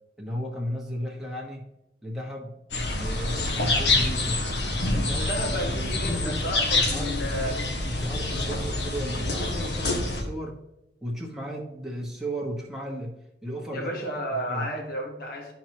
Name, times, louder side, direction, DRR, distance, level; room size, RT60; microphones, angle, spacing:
voice 1, 0.2-1.6 2.0-2.6 3.0-4.4 4.9-6.4 6.7-7.6 7.8-10.6 11.0-13.1 13.4-14.1 14.5-14.7, equal, ahead, -3 dB, 1.2 m, -34 dB
sound 1, 2.7-10.2, left 2 dB, 75° left, 1.4 m, -27 dB
voice 2, 5.2-7.8 8.1-8.2 13.7-15.5, equal, 55° left, 2 dB, 1.5 m, -32 dB
11.5 x 4.6 x 2.9 m, 0.89 s
head